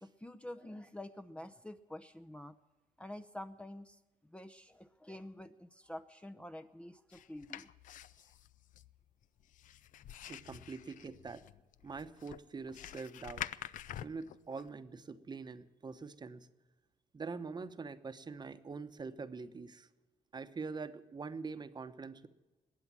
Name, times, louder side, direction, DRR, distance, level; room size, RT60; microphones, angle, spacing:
voice 1, 0.0-2.6 3.0-7.7, left 1 dB, 10° left, 10 dB, 0.6 m, -48 dB
sound 1, 7.1-14.7, left 11 dB, 75° left, 0.5 m, -48 dB
voice 2, 10.3-11.4 11.8-13.4 14.0-16.5 17.1-19.9 20.3-22.3, right 4 dB, 30° right, 11 dB, 0.9 m, -44 dB
21.0 x 8.5 x 7.4 m, 1.2 s
cardioid pair, 100°, 14 cm